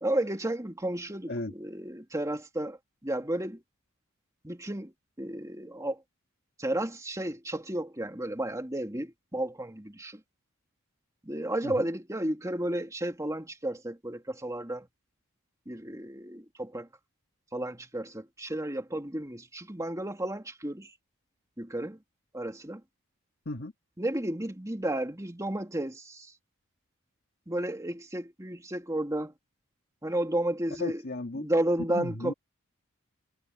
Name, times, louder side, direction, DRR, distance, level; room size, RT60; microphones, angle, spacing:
voice 1, 0.0-3.6 4.4-4.9 5.2-6.0 6.6-10.2 11.2-14.9 15.7-16.9 17.5-20.9 21.6-22.0 22.3-22.8 24.0-26.3 27.5-29.3 30.0-31.0 31.3-32.3, right 1 dB, 15° right, 2.3 m, -32 dB
voice 2, 30.8-31.5 31.9-32.3, left 2 dB, 50° left, 1.6 m, -35 dB
head